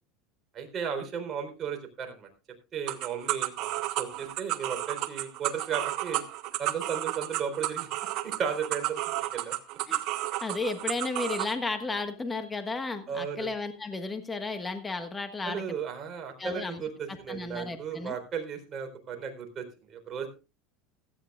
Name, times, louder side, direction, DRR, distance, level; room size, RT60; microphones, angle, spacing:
voice 1, 0.5-2.3 2.7-6.2 6.6-7.9 8.2-9.5 13.1-13.5 15.4-20.3, right 7 dB, 30° right, 4 dB, 4.1 m, -35 dB
sound 1, 2.9-11.5, right 15 dB, 55° right, 1.3 m, -32 dB
voice 2, 10.4-15.6 16.4-16.8 17.1-18.1, left 3 dB, 15° left, 8 dB, 1.4 m, -33 dB
16.5 x 13.5 x 2.4 m, 0.30 s
supercardioid pair, 140°, 0 cm